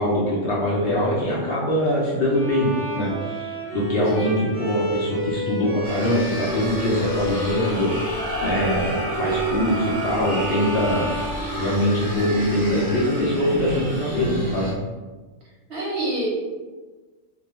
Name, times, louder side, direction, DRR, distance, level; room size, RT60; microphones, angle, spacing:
voice 1, 0.0-2.7 2.9-14.7, equal, 60° left, -5 dB, 0.7 m, -23 dB
Bowed string instrument, 2.3-12.1, right 1 dB, 15° right, 0.7 m, -31 dB
sound 1, 5.8-14.7, left 1 dB, 35° left, 0.9 m, -30 dB
voice 2, 15.7-16.3, right 1 dB, 60° right, -5 dB, 0.7 m, -27 dB
2.2 x 2.1 x 2.9 m, 1.3 s
omnidirectional pair, 1.3 m